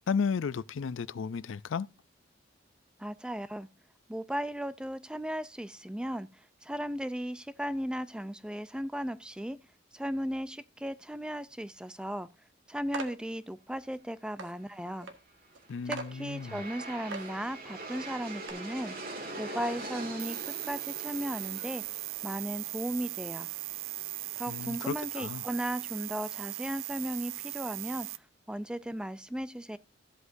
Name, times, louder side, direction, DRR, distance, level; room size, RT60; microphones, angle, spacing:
voice 1, 0.1-1.9 15.7-16.6 24.5-25.4, left 6 dB, 80° left, 0.4 m, -33 dB
voice 2, 3.0-3.7 4.1-9.6 9.9-12.3 12.7-15.1 15.9-18.9 19.4-20.4 20.7-21.8 22.2-23.5 24.4-28.1 28.5-29.8, equal, 5° right, 0.4 m, -36 dB
sound 1, 12.9-13.2 13.9-14.0 14.4-14.5 15.0-15.1 15.5-15.6 15.9-16.1 16.7-16.8 17.1-17.4 17.9-18.0 18.5-18.6, right 3 dB, 70° right, 1.6 m, -39 dB
Aircraft, 15.4-26.5, right 2 dB, 50° right, 2.3 m, -44 dB
sound 2, 20.2-28.2, right 18 dB, 90° right, 0.5 m, -38 dB
14.5 x 8.0 x 2.6 m
head